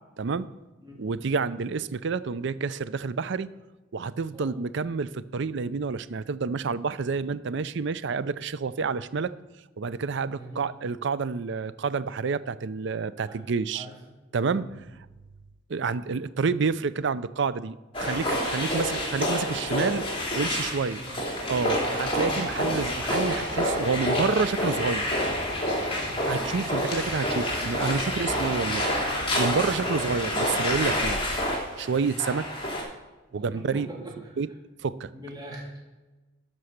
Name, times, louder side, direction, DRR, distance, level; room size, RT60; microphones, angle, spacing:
voice 1, 0.2-0.5 1.0-3.5 3.9-9.3 9.8-13.9 14.3-14.9 15.7-20.0 20.3-21.0 21.5-25.0 26.3-28.8 29.4-31.2 31.8-32.5 33.3-33.9 34.4-34.5 34.8-35.1, right 5 dB, 65° right, 15 dB, 0.5 m, -29 dB
voice 2, 10.3-10.7 13.2-14.0 14.6-14.8 20.8-21.2 21.8-22.1 25.9-26.2 29.7-29.9 33.3-34.4 35.1-35.8, right 2 dB, 20° right, -3 dB, 3.3 m, -43 dB
sound 1, 17.9-32.8, left 1 dB, 30° left, 3.0 m, -28 dB
12.5 x 5.5 x 6.5 m, 1.1 s
head